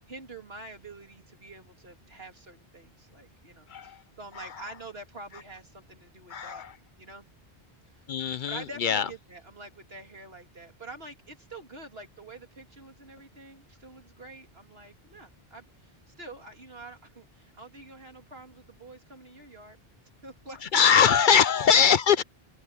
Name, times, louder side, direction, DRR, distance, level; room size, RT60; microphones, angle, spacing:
voice 1, 0.1-6.6 7.0-7.3 7.9-8.1 8.5-19.8 20.2-21.1, right 2 dB, 75° right, 3.5 m, -46 dB
voice 2, 3.7-4.0 4.3-4.7 6.3-6.8 8.1-9.1 20.6-22.2, left 7 dB, 60° left, 0.7 m, -22 dB
open air
omnidirectional pair, 1.0 m